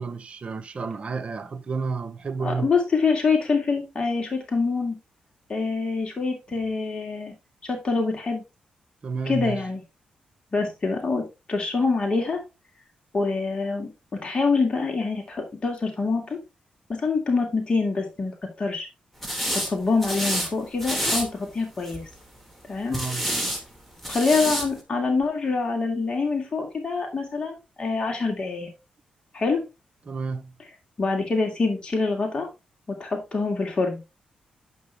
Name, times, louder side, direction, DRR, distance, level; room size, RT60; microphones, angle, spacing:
voice 1, 0.0-2.7 9.0-9.6 22.9-23.4 30.1-30.5, right 4 dB, 45° right, 0.9 m, -31 dB
voice 2, 2.4-5.0 5.5-7.3 7.6-8.4 9.3-9.8 10.5-11.2 11.5-12.4 13.1-13.9 14.2-16.4 16.9-18.9 19.6-22.1 22.7-23.0 24.1-28.7 29.3-29.6 31.0-32.5 32.9-34.0, left 4 dB, 35° left, 2.5 m, -25 dB
sound 1, 19.2-19.7 20.0-20.5 20.8-21.2 21.8-22.2 22.9-23.6 24.0-24.7, equal, 5° left, 2.5 m, -27 dB
9.2 x 5.9 x 3.5 m
cardioid pair, 85°, 3 cm